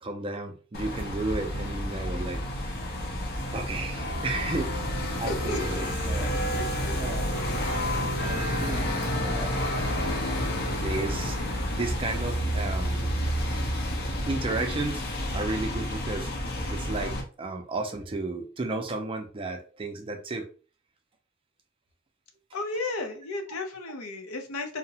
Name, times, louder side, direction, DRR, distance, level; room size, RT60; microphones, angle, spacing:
voice 1, 0.0-2.7 3.5-6.3 7.0-7.4 8.2-9.6 10.8-11.4 11.7-13.1 14.3-16.3 16.7-20.5, right 2 dB, 25° right, 4 dB, 0.4 m, -33 dB
sound 1, 0.7-17.2, equal, 50° left, 0.6 m, -30 dB
voice 2, 5.3-5.6 6.5-7.0 7.3-7.7 22.5-24.8, left 2 dB, 85° left, 5 dB, 0.6 m, -34 dB
2.8 x 2.0 x 2.7 m, 0.37 s
head